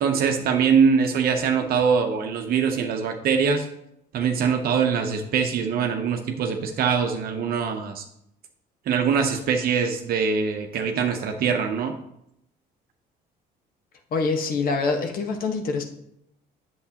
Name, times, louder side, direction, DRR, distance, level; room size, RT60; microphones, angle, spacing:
voice 1, 0.0-3.7 4.1-8.0 8.9-11.9, right 6 dB, 60° right, 4 dB, 0.7 m, -23 dB
voice 2, 14.1-15.8, left 4 dB, 60° left, 4 dB, 1.2 m, -25 dB
8.2 x 7.1 x 2.8 m, 0.80 s
cardioid pair, 110°, 17 cm